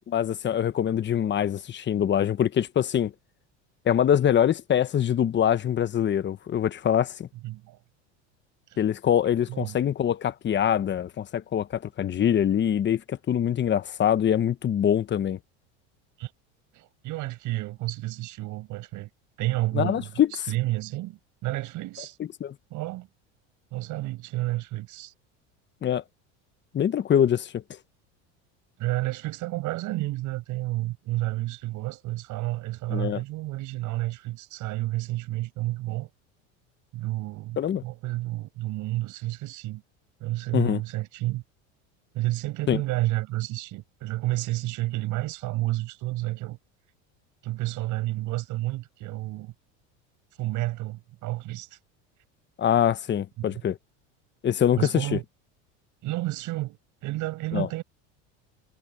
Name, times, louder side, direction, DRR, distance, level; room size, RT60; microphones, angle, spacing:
voice 1, 0.1-3.1 3.8-7.3 8.8-15.4 19.7-20.3 22.4-22.5 25.8-26.0 26.7-27.6 32.9-33.2 37.6-37.8 40.5-40.8 42.7-42.8 52.6-53.8 54.4-55.2 57.5-57.7, left 9 dB, 30° left, 1.1 m, -24 dB
voice 2, 7.4-7.8 8.7-8.8 9.5-9.8 16.2-16.3 16.7-19.1 19.4-22.2 22.7-23.1 23.7-25.1 28.8-36.1 36.9-39.8 40.2-41.4 42.1-46.6 47.4-49.5 50.4-51.8 53.4-53.6 54.8-55.2 56.0-57.8, right 18 dB, 60° right, 5.9 m, -30 dB
supercardioid pair, 105°, 35 cm